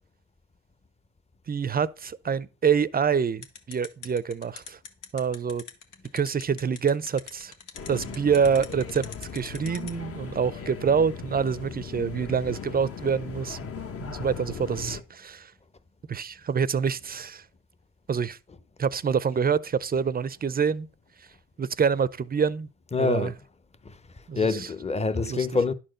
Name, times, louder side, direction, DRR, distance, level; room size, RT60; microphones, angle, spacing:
voice 1, 1.5-4.8 5.1-5.6 6.1-7.5 7.9-9.0 9.3-13.7 14.0-15.5 16.1-17.4 18.1-18.4 18.8-20.9 21.6-22.7 23.0-23.3 24.3-24.7 25.3-25.5, right 6 dB, 30° right, 0.5 m, -26 dB
sound 1, 3.4-9.9, left 7 dB, 85° left, 1.5 m, -41 dB
sound 2, 7.7-15.0, left 6 dB, 50° left, 1.2 m, -38 dB
voice 2, 22.9-23.3 23.8-23.9 24.4-25.7, left 4 dB, 20° left, 0.9 m, -25 dB
11.0 x 4.4 x 6.4 m
cardioid pair, 90°, 30 cm